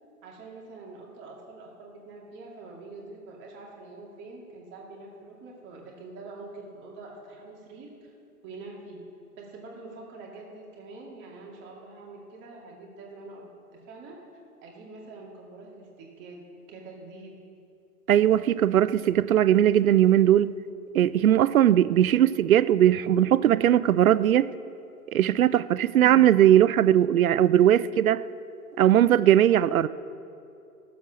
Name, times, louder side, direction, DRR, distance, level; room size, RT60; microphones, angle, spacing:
voice 1, 0.2-8.1 8.4-9.0 9.4-14.2 14.6-16.4 16.7-17.4, right 3 dB, 25° right, -2 dB, 2.4 m, -45 dB
voice 2, 18.1-20.5 20.9-24.5 25.1-28.2 28.8-29.9, right 11 dB, 65° right, 17 dB, 0.5 m, -19 dB
15.5 x 7.4 x 6.2 m, 2.6 s
figure-of-eight pair, 120°, 46 cm